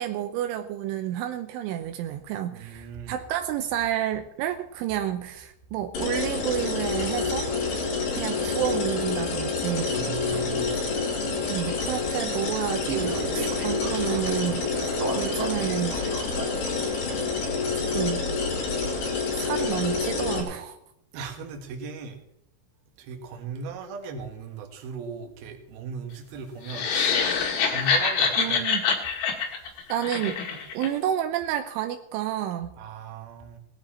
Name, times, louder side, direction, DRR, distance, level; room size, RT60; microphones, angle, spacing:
voice 1, 0.0-7.5 8.1-9.9 11.5-16.0 17.7-18.3 19.3-20.8 28.4-28.8 29.9-30.4 30.7-32.7, right 11 dB, 85° right, 7 dB, 3.2 m, -30 dB
voice 2, 2.5-3.2 9.9-10.8 21.1-22.2 23.0-26.9 27.7-28.7 32.8-33.6, right 5 dB, 60° right, 3 dB, 3.2 m, -37 dB
sound 1, 5.9-20.4, left 4 dB, 85° left, 6.9 m, -28 dB
sound 2, 9.8-18.3, right 3 dB, 40° right, 1.9 m, -37 dB
sound 3, 26.7-30.9, left 6 dB, 65° left, 3.7 m, -25 dB
18.5 x 13.0 x 4.4 m, 0.76 s
omnidirectional pair, 5.6 m